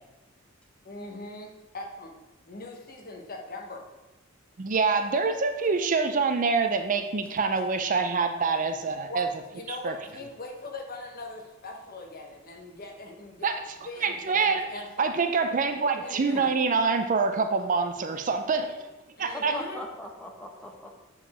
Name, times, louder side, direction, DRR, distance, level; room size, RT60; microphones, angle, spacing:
voice 1, 0.8-2.1 2.5-3.9 9.1-9.2 9.5-13.5 13.8-15.2 16.0-16.5 19.2-19.8, left 2 dB, 45° left, 3 dB, 1.0 m, -41 dB
voice 2, 4.6-9.3 9.7-9.9 13.4-13.5 14.0-14.7 15.0-18.7 19.2-19.5, right 4 dB, 40° right, 7 dB, 0.5 m, -25 dB
voice 3, 16.0-16.4 19.3-21.0, left 1 dB, 5° left, 1 dB, 0.9 m, -41 dB
7.2 x 4.7 x 4.2 m, 1.1 s
head